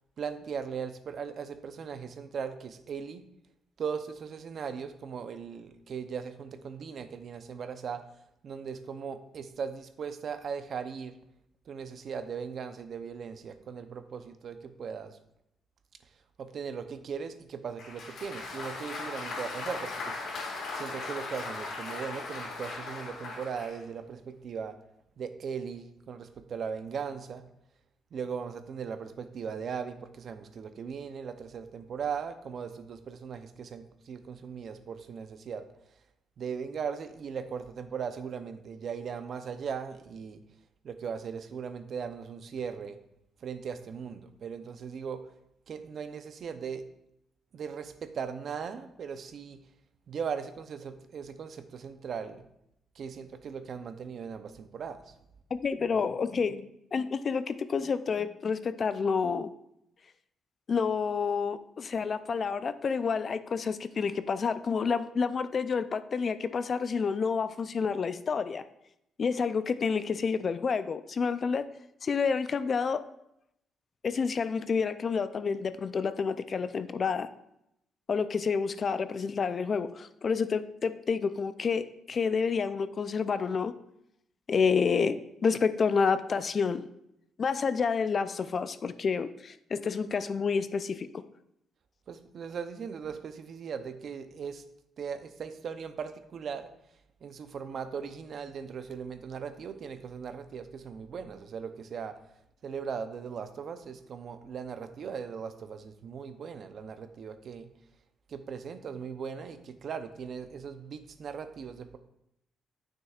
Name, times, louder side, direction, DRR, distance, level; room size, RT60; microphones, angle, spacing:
voice 1, 0.2-3.2 3.8-8.0 8.4-11.2 11.7-15.2 16.4-20.3 20.7-24.7 25.2-27.5 28.1-35.7 36.4-40.4 40.8-43.0 43.4-45.2 45.7-46.8 47.5-49.6 50.1-52.4 53.0-55.1 92.1-94.6 95.0-96.7 97.2-102.1 102.6-107.7 108.3-112.0, right 6 dB, 55° right, 9 dB, 0.6 m, -38 dB
Applause, 17.8-23.8, left 3 dB, 75° left, 2.4 m, -38 dB
voice 2, 55.5-59.5 60.7-68.6 69.2-71.6 72.0-73.0 74.0-77.3 78.1-83.7 84.5-86.9 87.4-91.1, left 5 dB, 45° left, 12 dB, 0.4 m, -29 dB
9.0 x 6.4 x 2.4 m, 0.79 s
cardioid pair, 90°, 0 cm